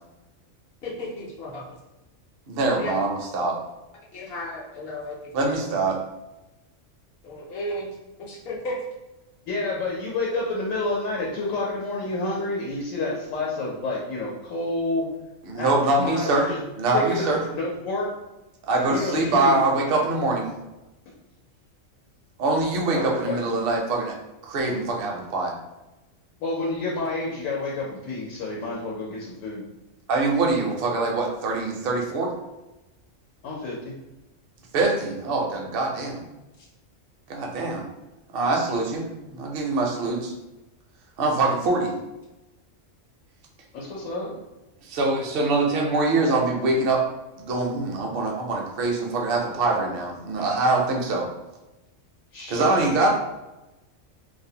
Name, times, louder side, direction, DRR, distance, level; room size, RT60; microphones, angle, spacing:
voice 1, 0.8-1.6 2.8-2.9 4.1-5.7 7.2-8.8, left 1 dB, 60° left, -3 dB, 0.7 m, -34 dB
voice 2, 2.5-3.6 5.3-6.0 15.4-16.5 16.8-17.4 18.6-20.5 22.4-24.2 24.4-25.5 30.1-32.3 34.7-36.2 37.3-37.9 38.3-40.3 41.2-42.0 44.8-47.0 47.4-51.3 52.5-53.1, right 2 dB, 60° right, 0 dB, 0.6 m, -24 dB
voice 3, 9.5-15.1 15.5-15.7 16.0-16.6 16.9-18.1 18.8-19.6 22.7-23.4 26.4-29.6 33.4-33.9 43.7-44.3 52.3-52.8, left 2 dB, 85° left, -5 dB, 1.0 m, -29 dB
2.5 x 2.0 x 2.7 m, 1.0 s
omnidirectional pair, 1.3 m